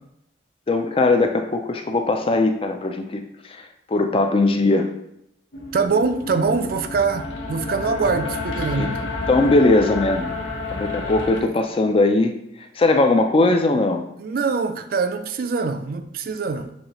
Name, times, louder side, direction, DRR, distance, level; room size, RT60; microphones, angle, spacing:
voice 1, 0.7-3.2 3.5-3.6 3.9-4.9 8.8-8.9 9.3-10.3 10.7-12.3 12.8-14.0, left 2 dB, 30° left, 0.4 m, -19 dB
sound 1, 5.5-11.4, left 3 dB, 90° left, 0.7 m, -30 dB
voice 2, 5.7-9.1 11.3-11.5 14.2-16.7, right 4 dB, 50° right, 0.3 m, -24 dB
6.4 x 2.7 x 2.9 m
head